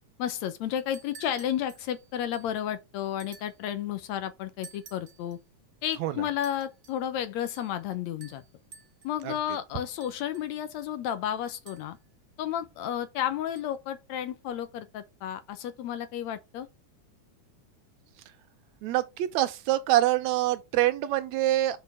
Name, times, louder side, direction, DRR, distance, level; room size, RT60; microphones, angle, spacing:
voice 1, 0.2-5.4 5.8-8.4 9.0-12.0 12.4-16.7, left 10 dB, 75° left, 1.9 m, -32 dB
sound 1, 0.7-2.6 3.2-3.7 4.6-5.4 6.4-7.1 7.5-7.9 8.2-9.2 10.0-10.7 11.7-12.1 13.6-13.7, right 5 dB, 45° right, 1.7 m, -53 dB
voice 2, 18.8-21.8, right 14 dB, 75° right, 1.9 m, -25 dB
6.1 x 4.4 x 5.6 m
omnidirectional pair, 3.5 m